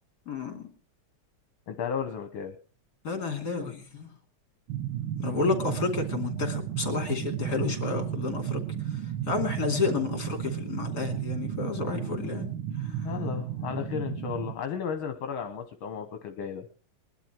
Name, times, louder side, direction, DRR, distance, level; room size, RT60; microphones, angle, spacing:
voice 1, 0.3-0.7 3.0-4.1 5.2-8.6 8.9-12.5 12.8-13.1, left 4 dB, 50° left, 5 dB, 3.3 m, -31 dB
voice 2, 1.7-2.6 13.0-16.7, left 7 dB, 70° left, 6 dB, 1.9 m, -34 dB
sound 1, 4.7-14.5, right 10 dB, 75° right, 1.8 m, -33 dB
21.0 x 11.5 x 4.5 m, 0.38 s
omnidirectional pair, 2.3 m